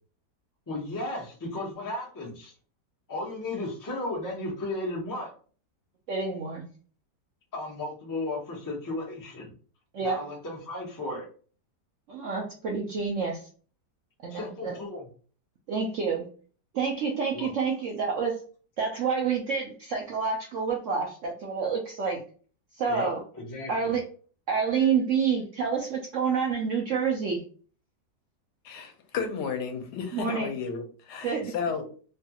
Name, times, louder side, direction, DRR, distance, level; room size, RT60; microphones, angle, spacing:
voice 1, 0.7-2.5 3.1-5.3 7.5-9.5 10.0-11.3 14.3-15.1 17.3-17.5 22.9-23.9, left 2 dB, 25° left, 0.4 m, -34 dB
voice 2, 6.1-6.7 9.9-10.2 12.1-13.4 14.2-14.8 15.7-16.3 16.7-18.3 18.8-22.2 22.7-23.2 23.7-24.0 24.5-27.4 30.1-30.5 31.2-31.5, right 5 dB, 70° right, 0.7 m, -28 dB
voice 3, 28.6-31.9, left 6 dB, 75° left, 1.2 m, -33 dB
3.2 x 2.3 x 2.8 m
omnidirectional pair, 1.9 m